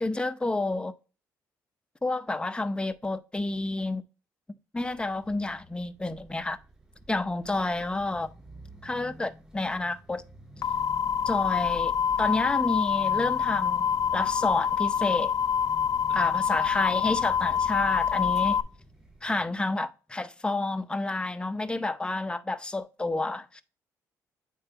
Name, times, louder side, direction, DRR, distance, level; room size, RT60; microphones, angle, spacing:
voice 1, 0.0-0.9 2.0-4.0 4.7-6.6 7.1-8.3 8.8-10.2 11.3-11.9 12.2-15.3 16.1-18.6 19.2-23.6, left 2 dB, 15° left, 0.7 m, -29 dB
sound 1, 4.8-19.4, equal, 10° right, 3.9 m, -50 dB
sound 2, 10.6-18.6, left 7 dB, 55° left, 0.4 m, -26 dB
8.7 x 4.6 x 2.8 m
cardioid pair, 100°, 7 cm